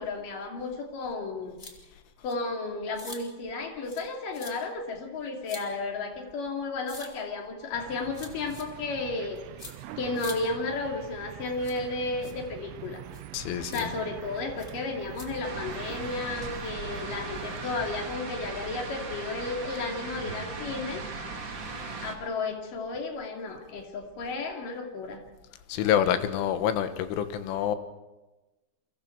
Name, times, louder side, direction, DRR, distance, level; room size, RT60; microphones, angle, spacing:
voice 1, 0.0-1.6 2.2-9.4 10.0-13.0 13.7-21.0 22.0-25.2, left 3 dB, 50° left, 2 dB, 3.8 m, -33 dB
sound 1, 1.6-1.7 2.3-2.4 2.9-3.2 3.8-4.1 4.3-4.5 5.4-5.6 6.9-7.1 8.1-8.6 9.6-9.7 10.1-10.4 11.6-11.8 12.2-12.3 13.1-13.3 13.7-13.8 14.6-14.7 15.1-15.2, left 3 dB, 25° left, 1.7 m, -44 dB
sound 2, 7.7-18.2, right 12 dB, 85° right, 3.5 m, -44 dB
voice 2, 13.3-13.9 25.7-27.8, left 9 dB, 80° left, 10 dB, 3.8 m, -27 dB
sound 3, 15.4-22.1, right 4 dB, 40° right, 1.8 m, -38 dB
29.5 x 24.0 x 4.6 m, 1.1 s
omnidirectional pair, 5.5 m